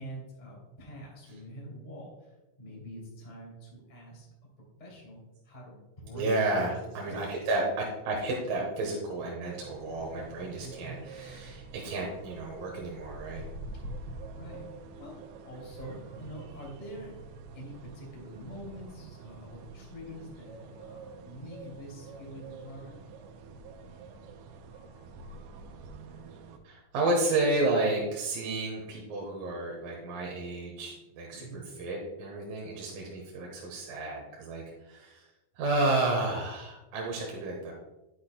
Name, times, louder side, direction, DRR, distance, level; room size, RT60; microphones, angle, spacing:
voice 1, 0.0-4.3 4.8-7.1 10.6-11.1 14.2-14.7 15.0-15.2 15.4-17.1 17.5-23.0 31.3-31.6, equal, 15° left, -3 dB, 1.9 m, -45 dB
voice 2, 6.1-13.4 26.6-35.3 35.6-37.7, right 2 dB, 70° right, -1 dB, 2.3 m, -31 dB
sound 1, 9.5-26.6, right 3 dB, 85° right, 3.1 m, -46 dB
11.0 x 8.1 x 2.2 m, 1.0 s
omnidirectional pair, 5.3 m